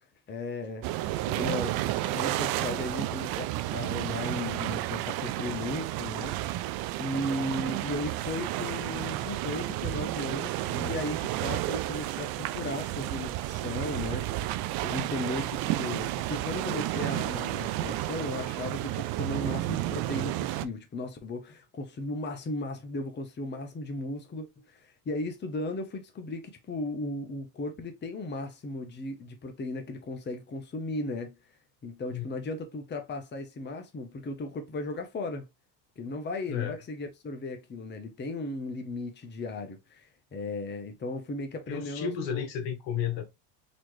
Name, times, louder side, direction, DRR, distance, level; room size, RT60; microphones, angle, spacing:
voice 1, 0.3-0.9 1.3-6.7 7.0-14.4 14.7-31.3 31.8-35.5 36.0-42.4, left 2 dB, 25° left, 0.9 m, -36 dB
sound 1, 0.8-20.7, right 15 dB, 55° right, 0.5 m, -32 dB
voice 2, 36.5-36.8 41.7-43.2, left 8 dB, 70° left, 1.4 m, -32 dB
4.1 x 3.0 x 3.1 m
supercardioid pair, 100°, 46 cm